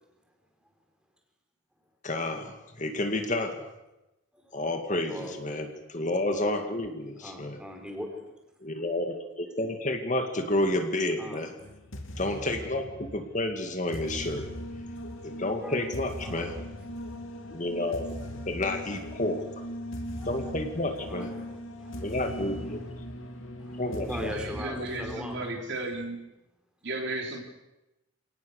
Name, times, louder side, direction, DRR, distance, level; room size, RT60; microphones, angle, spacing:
voice 1, 2.0-3.6 4.5-7.6 8.6-11.5 12.2-14.4 15.2-16.5 17.5-18.1 18.5-19.6 20.3-21.3 22.0-22.8 23.8-24.3, left 1 dB, 35° left, 5 dB, 2.3 m, -30 dB
voice 2, 4.3-4.6 5.1-5.4 7.1-8.3 11.2-11.5 15.6-16.6 17.4-17.6 18.1-18.3 20.1-20.5 21.0-22.9 23.6-25.6, equal, 5° right, 2 dB, 4.3 m, -41 dB
sound 1, 11.6-25.5, equal, 70° left, 3.0 m, -39 dB
voice 3, 24.3-26.2 26.8-27.4, right 2 dB, 55° right, 2 dB, 3.9 m, -34 dB
28.0 x 18.5 x 6.7 m, 0.95 s
head